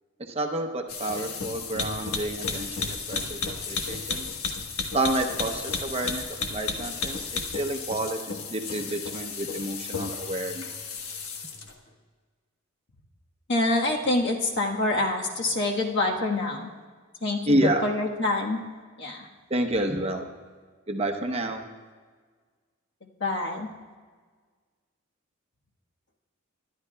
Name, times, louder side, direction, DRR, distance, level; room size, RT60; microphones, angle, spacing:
voice 1, 0.2-4.3 4.9-6.2 6.5-7.2 7.5-8.2 8.5-10.7 17.5-17.8 19.5-20.3 20.9-21.6, right 1 dB, 30° right, 4 dB, 0.8 m, -29 dB
sound 1, 0.9-11.7, left 4 dB, 90° left, 1.3 m, -33 dB
voice 2, 13.5-16.7 17.2-18.6 19.0-19.3 23.2-23.7, left 2 dB, 55° left, 0 dB, 1.4 m, -26 dB
22.0 x 11.0 x 2.3 m, 1.5 s
head